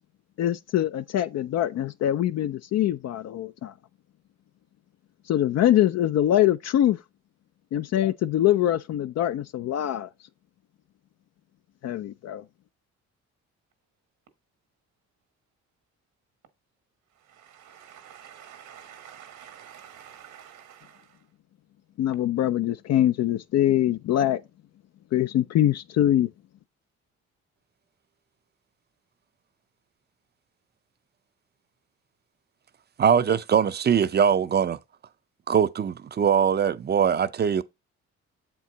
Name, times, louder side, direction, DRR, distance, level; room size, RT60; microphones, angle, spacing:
voice 1, 0.4-3.7 5.3-7.0 7.7-10.1 11.8-12.4 22.0-24.4 25.1-26.3, left 12 dB, 60° left, 0.4 m, -23 dB
voice 2, 17.3-21.1, right 9 dB, 85° right, 1.5 m, -48 dB
voice 3, 33.0-34.8 35.5-37.6, right 7 dB, 35° right, 0.5 m, -22 dB
7.3 x 4.6 x 3.9 m
cardioid pair, 90°, 30 cm